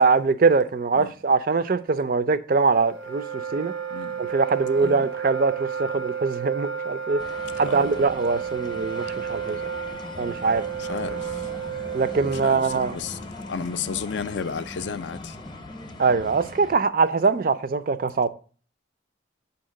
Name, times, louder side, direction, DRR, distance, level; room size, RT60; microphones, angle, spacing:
voice 1, 0.0-3.7 4.2-7.2 7.6-9.6 10.2-10.6 11.9-13.0 16.0-18.3, right 4 dB, 45° right, 0.4 m, -22 dB
Wind instrument woodwind instrument, 2.7-12.6, right 7 dB, 85° right, 0.9 m, -32 dB
voice 2, 3.9-4.2 4.8-5.1 7.7-8.0 10.8-11.5 12.2-13.2 13.5-15.4, left 6 dB, 65° left, 0.4 m, -33 dB
sound 1, 7.2-16.8, left 1 dB, 25° left, 0.6 m, -40 dB
8.0 x 2.9 x 6.2 m
head